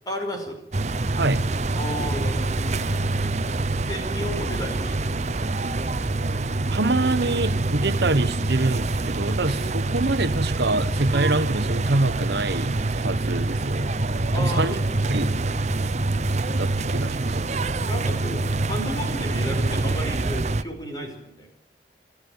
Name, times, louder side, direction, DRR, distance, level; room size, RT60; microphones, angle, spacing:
voice 1, 0.1-0.6 1.7-3.2 3.9-5.4 14.3-14.8 15.2-15.5 17.9-21.5, equal, 20° left, 5.3 m, -33 dB
sound 1, 0.7-20.6, right 2 dB, 40° right, 0.8 m, -25 dB
voice 2, 1.1-1.5 6.7-13.9 14.4-14.8 15.1-15.3 16.6-17.4, right 2 dB, 70° right, 1.0 m, -25 dB
26.5 x 13.5 x 9.4 m
head